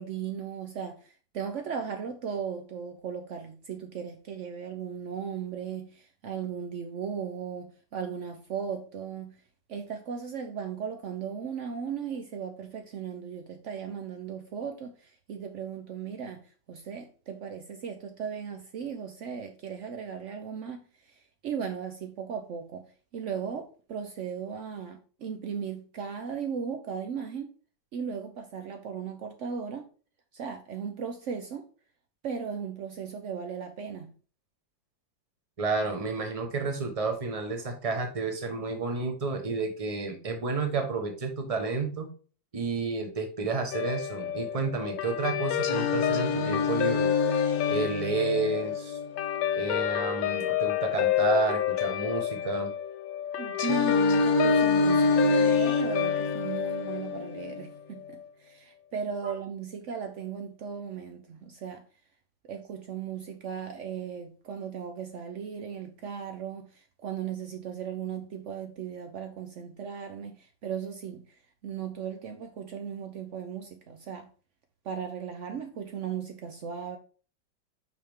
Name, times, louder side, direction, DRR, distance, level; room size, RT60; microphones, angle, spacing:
voice 1, 0.0-9.4 9.7-22.9 23.1-27.5 27.9-29.9 30.3-31.7 32.2-34.1 53.4-61.8 62.5-74.3 74.8-77.0, right 7 dB, 80° right, 0.6 m, -37 dB
voice 2, 35.6-42.1 42.5-47.1 47.7-49.0 49.6-52.7 59.2-59.3, right 4 dB, 25° right, 0.8 m, -31 dB
Guitar, 43.7-58.3, left 12 dB, 75° left, 1.3 m, -30 dB
Singing, 45.6-49.6 53.6-57.6, left 2 dB, 55° left, 0.5 m, -27 dB
6.1 x 5.2 x 3.5 m
omnidirectional pair, 2.1 m